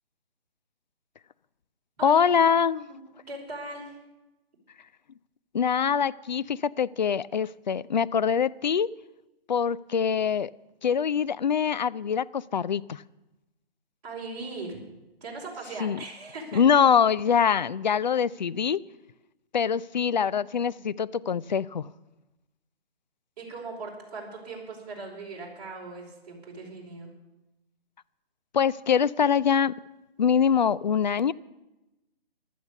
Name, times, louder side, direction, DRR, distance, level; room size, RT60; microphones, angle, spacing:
voice 1, 2.0-2.9 5.5-8.9 9.5-10.5 10.8-13.0 15.8-16.0 16.5-18.8 19.5-21.9 28.5-29.8 30.2-31.3, left 7 dB, 50° left, 19 dB, 0.4 m, -24 dB
voice 2, 3.3-4.0 14.0-14.8 15.2-16.8 23.4-27.1, right 3 dB, 40° right, -2 dB, 5.2 m, -39 dB
15.0 x 12.0 x 6.9 m, 0.99 s
hypercardioid pair, 160°, 30 cm